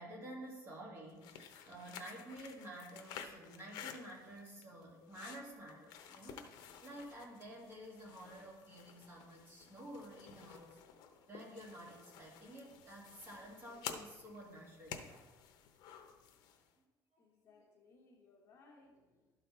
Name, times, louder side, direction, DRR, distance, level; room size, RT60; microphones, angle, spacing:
voice 1, 0.0-10.8 11.3-15.3 16.8-16.9 17.1-17.2, right 1 dB, 30° right, -2 dB, 1.9 m, -51 dB
sound 1, 1.1-16.7, left 8 dB, 65° left, 0.7 m, -52 dB
voice 2, 17.2-19.3, left 3 dB, 40° left, 0 dB, 1.2 m, -64 dB
12.0 x 4.1 x 4.3 m, 1.3 s
cardioid pair, 165°, 7 cm